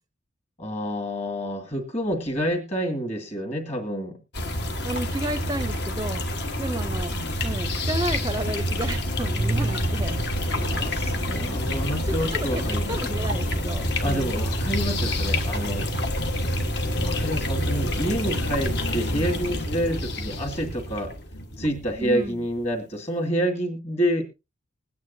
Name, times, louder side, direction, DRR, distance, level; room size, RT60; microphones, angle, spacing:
voice 1, 0.6-4.2 10.5-12.9 14.0-15.9 16.9-21.1 21.6-24.2, equal, 35° left, 3 dB, 2.2 m, -28 dB
sound 1, 4.3-22.5, left 1 dB, 55° left, 1.4 m, -27 dB
voice 2, 4.8-6.2 6.6-7.2 7.4-10.2 11.0-11.1 12.5-14.4 22.0-22.4, right 1 dB, 20° right, 10 dB, 0.5 m, -32 dB
21.5 x 9.4 x 2.7 m, 0.26 s
head